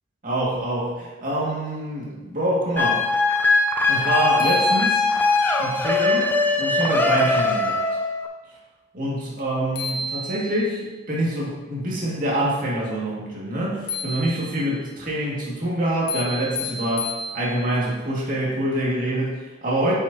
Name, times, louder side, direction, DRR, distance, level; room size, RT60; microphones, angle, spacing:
voice 1, 0.2-3.0 3.9-5.1 5.6-7.8 8.9-19.9, right 1 dB, 45° right, -5 dB, 2.0 m, -26 dB
sound 1, 2.8-8.3, left 3 dB, 10° left, 0.5 m, -21 dB
sound 2, 3.9-4.0 4.4-5.5 9.4-9.5 9.8-10.8 13.9-14.8 16.1-17.8, left 1 dB, 60° left, 1.0 m, -32 dB
8.3 x 6.4 x 2.8 m, 1.2 s
head